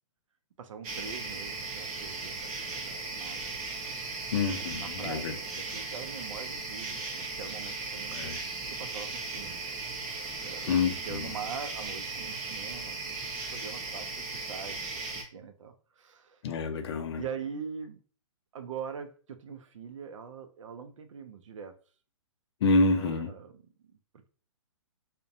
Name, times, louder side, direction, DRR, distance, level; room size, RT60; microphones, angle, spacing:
voice 1, 0.6-3.4 4.5-8.2 8.7-9.7 10.4-13.2 13.5-15.0 15.3-16.4 17.2-18.0 18.5-21.8 23.0-24.3, right 6 dB, 75° right, 0.4 m, -43 dB
sound 1, 0.8-15.2, right 3 dB, 30° right, 0.6 m, -37 dB
voice 2, 4.3-5.3 8.1-8.4 10.7-11.3 16.4-17.2 22.6-23.3, left 3 dB, 55° left, 0.4 m, -27 dB
2.6 x 2.1 x 2.5 m
hypercardioid pair, 145°, 16 cm